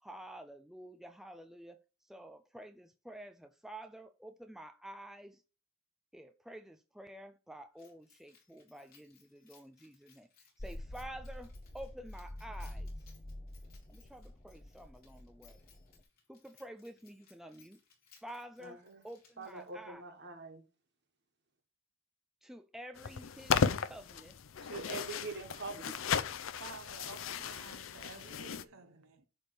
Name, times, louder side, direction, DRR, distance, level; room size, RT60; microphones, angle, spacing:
voice 1, 0.0-5.4 6.1-12.9 13.9-15.6 16.3-17.8 18.2-20.1 22.4-24.4, right 1 dB, ahead, 0.4 m, -50 dB
Keys jangling, 7.8-19.9, left 6 dB, 45° left, 3.5 m, -66 dB
sound 1, 10.6-16.0, left 1 dB, 25° left, 0.8 m, -47 dB
voice 2, 18.6-19.0 19.4-20.6 24.6-25.8, right 3 dB, 55° right, 1.6 m, -44 dB
sound 2, 23.0-28.6, left 6 dB, 65° left, 0.5 m, -35 dB
voice 3, 26.6-29.2, right 3 dB, 75° right, 0.9 m, -51 dB
10.0 x 3.5 x 6.6 m
head